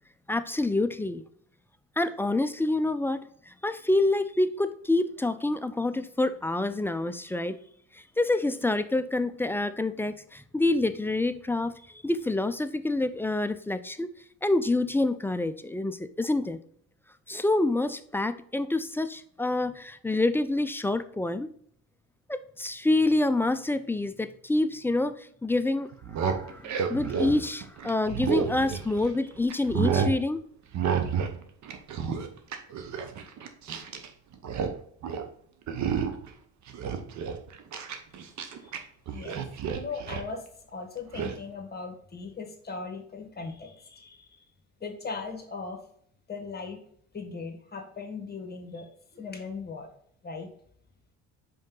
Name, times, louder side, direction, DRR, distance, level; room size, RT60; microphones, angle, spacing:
voice 1, 0.3-1.2 2.0-7.6 7.9-14.1 14.4-16.6 17.3-21.5 22.3-25.9 26.2-30.4, left 2 dB, 5° left, 11 dB, 0.3 m, -27 dB
sound 1, 25.9-29.2 29.5-30.2 30.7-31.4 31.6-34.1 34.3-34.7 35.0-35.3 35.7-36.3 36.7-38.8 39.1-40.3 41.1-41.3, right 7 dB, 50° right, 1.0 m, -30 dB
voice 2, 39.1-40.4 40.7-44.4 44.8-45.8 46.3-46.8 47.1-49.9 50.2-50.5, left 4 dB, 25° left, 5 dB, 1.5 m, -39 dB
5.3 x 4.6 x 3.8 m, 0.64 s
supercardioid pair, 85°, 35 cm